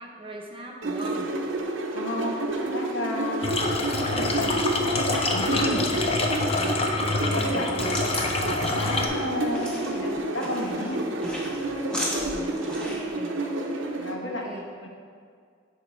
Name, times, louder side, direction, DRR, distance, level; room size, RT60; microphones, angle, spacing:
voice 1, 0.0-1.3 6.3-7.7 12.1-13.3 14.2-14.7, right 1 dB, 25° right, 0 dB, 0.7 m, -39 dB
sound 1, 0.8-14.1, right 2 dB, 80° right, 0.7 m, -30 dB
voice 2, 1.9-2.4 2.7-3.6 3.9-4.5 4.8-5.9 7.2-11.0 14.0-14.5 14.8-14.9, left 1 dB, 75° left, -1 dB, 1.1 m, -32 dB
sound 2, 3.4-9.1, left 3 dB, 30° left, 0.5 m, -27 dB
sound 3, 7.4-13.1, equal, 5° left, 1.0 m, -36 dB
10.5 x 4.3 x 3.1 m, 2.1 s
head